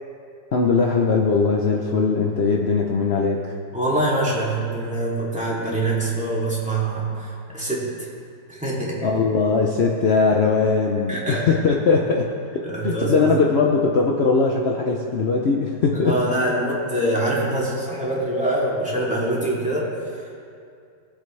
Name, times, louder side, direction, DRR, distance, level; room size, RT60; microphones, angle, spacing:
voice 1, 0.5-3.6 9.0-16.2, left 4 dB, 60° left, 0 dB, 0.6 m, -20 dB
voice 2, 3.7-8.1 8.5-9.0 11.1-11.6 12.6-13.3 16.0-20.4, right 1 dB, 5° right, -7 dB, 2.6 m, -24 dB
22.0 x 7.9 x 3.3 m, 2.4 s
omnidirectional pair, 2.1 m